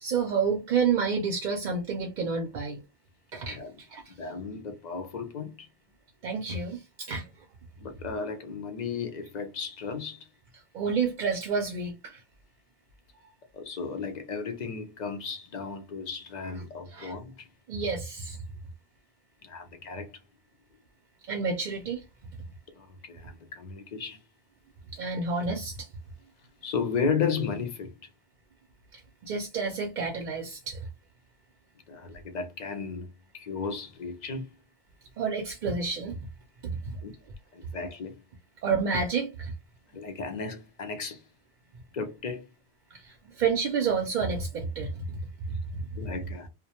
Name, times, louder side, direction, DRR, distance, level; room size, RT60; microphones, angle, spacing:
voice 1, 0.0-2.8 3.3-3.6 3.9-4.0 6.2-7.3 10.7-12.2 16.9-17.1 17.7-18.4 21.3-22.0 24.9-25.9 28.9-30.8 35.2-36.2 36.6-37.0 38.6-39.5 42.9-45.2 45.5-45.9, right 5 dB, 60° right, 0.5 m, -29 dB
voice 2, 3.5-3.8 4.1-5.7 7.8-10.3 13.5-17.5 19.4-20.2 22.7-24.2 26.6-28.0 31.9-34.5 37.0-37.1 37.5-38.2 39.9-41.2 41.9-42.4 46.0-46.5, left 5 dB, 55° left, 0.5 m, -34 dB
2.3 x 2.1 x 2.8 m
omnidirectional pair, 1.1 m